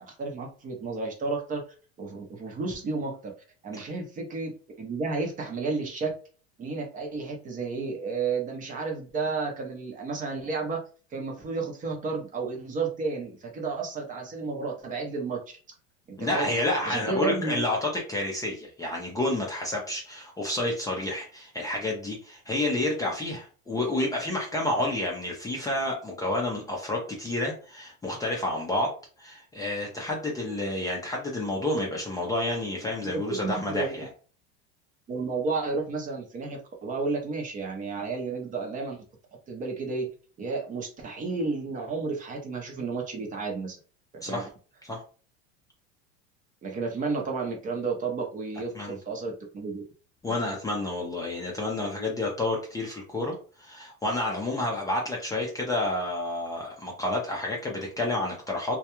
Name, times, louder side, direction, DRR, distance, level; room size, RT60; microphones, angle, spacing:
voice 1, 0.1-1.6 2.0-3.3 3.6-6.1 6.6-10.8 11.1-15.4 16.1-16.5 16.8-17.6 33.0-33.9 35.1-39.0 39.5-40.1 40.4-43.8 44.1-44.5 46.6-49.8, right 4 dB, 25° right, 2 dB, 0.6 m, -32 dB
voice 2, 16.2-28.9 29.2-34.1 44.2-44.5 44.8-45.0 48.7-49.0 50.2-58.8, left 1 dB, 10° left, -2 dB, 0.5 m, -29 dB
2.3 x 2.2 x 2.9 m, 0.38 s
supercardioid pair, 130°, 32 cm